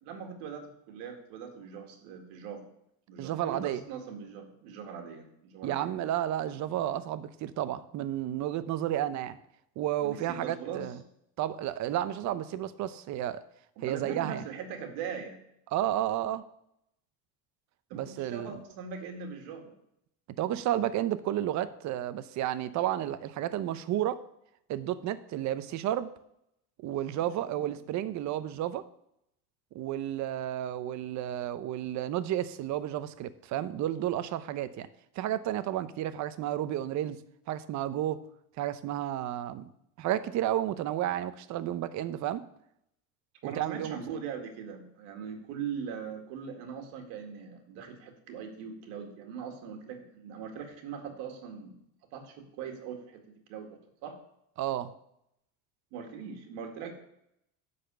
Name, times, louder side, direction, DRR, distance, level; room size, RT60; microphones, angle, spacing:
voice 1, 0.0-2.7 3.1-5.9 10.0-10.9 13.8-15.4 17.9-19.7 27.2-27.8 43.4-51.7 52.1-53.2 53.5-53.7 54.0-54.2 55.9-56.9, right 6 dB, 80° right, 4 dB, 1.9 m, -41 dB
voice 2, 3.2-3.8 5.6-9.4 9.8-11.0 11.4-13.4 13.8-14.4 15.7-16.4 17.9-18.5 20.4-24.2 24.7-26.1 26.8-28.8 29.7-34.9 35.2-37.2 37.5-38.2 38.6-39.7 40.0-42.4 43.4-44.0 54.6-54.9, right 12 dB, 45° right, 14 dB, 0.6 m, -32 dB
10.0 x 4.2 x 6.8 m, 0.77 s
cardioid pair, 140°, 42 cm